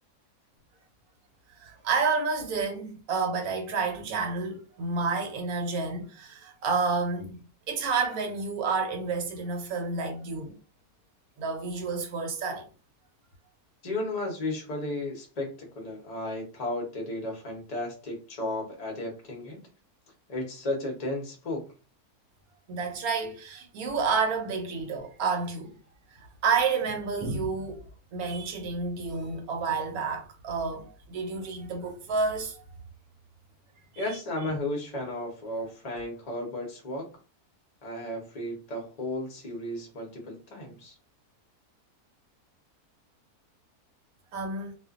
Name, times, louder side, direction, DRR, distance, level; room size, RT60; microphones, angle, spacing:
voice 1, 1.6-7.4 7.7-10.5 11.4-12.7 22.7-25.7 26.1-27.8 28.1-32.6 33.9-34.0 44.3-44.7, right 4 dB, 75° right, 1.1 m, -30 dB
voice 2, 13.8-19.6 20.3-21.7 34.0-37.1 37.8-40.9, left 1 dB, 35° left, 0.6 m, -34 dB
2.5 x 2.4 x 2.3 m
omnidirectional pair, 1.6 m